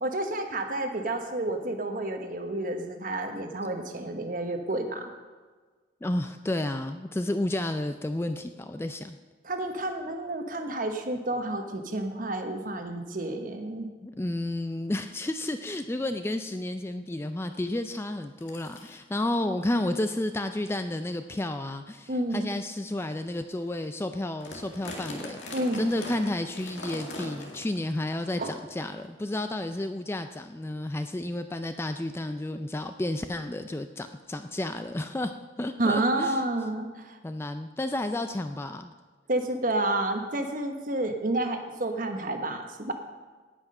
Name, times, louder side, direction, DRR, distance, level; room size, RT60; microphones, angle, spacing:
voice 1, 0.0-5.1 9.4-13.9 22.1-22.5 25.5-25.8 28.4-28.5 35.8-37.2 39.3-42.9, right 2 dB, 45° right, 5 dB, 1.1 m, -30 dB
voice 2, 6.0-9.2 14.0-36.4 37.2-38.9, left 1 dB, 15° left, 8 dB, 0.3 m, -31 dB
sound 1, 14.6-14.7 15.1-15.3 15.9-16.0 16.3-16.6 17.7-17.8 18.4-19.0 19.7-19.9 20.5-20.7 21.3-21.4 22.1-22.3 22.8-22.9 23.3-23.4 23.6-23.9 24.2-27.8 28.1-28.2 29.0-29.1, left 1 dB, 90° left, 1.9 m, -41 dB
18.0 x 6.0 x 5.4 m, 1.4 s
head